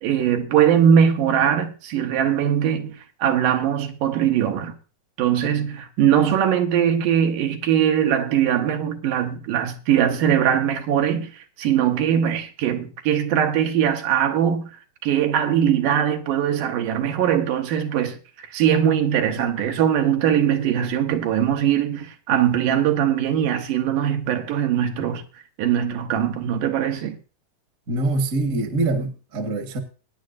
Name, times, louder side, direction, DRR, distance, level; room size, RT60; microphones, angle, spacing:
voice 1, 0.0-2.9 3.2-4.7 5.2-14.6 15.0-18.2 18.5-25.2 25.6-27.2, right 9 dB, 80° right, 2.6 m, -21 dB
voice 2, 27.9-29.8, right 2 dB, 40° right, 1.2 m, -24 dB
22.0 x 9.6 x 2.6 m
omnidirectional pair, 3.7 m